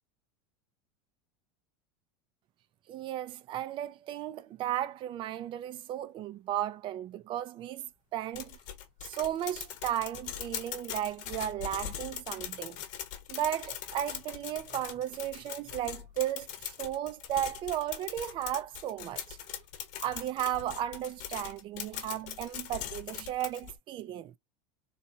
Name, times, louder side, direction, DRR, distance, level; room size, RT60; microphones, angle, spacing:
voice 1, 2.9-8.6 9.0-12.8 13.3-19.6 20.0-24.3, right 12 dB, 30° right, 0.4 m, -35 dB
sound 1, 8.3-23.8, left 10 dB, 50° left, 1.1 m, -41 dB
4.0 x 2.2 x 2.7 m
supercardioid pair, 155°, 16 cm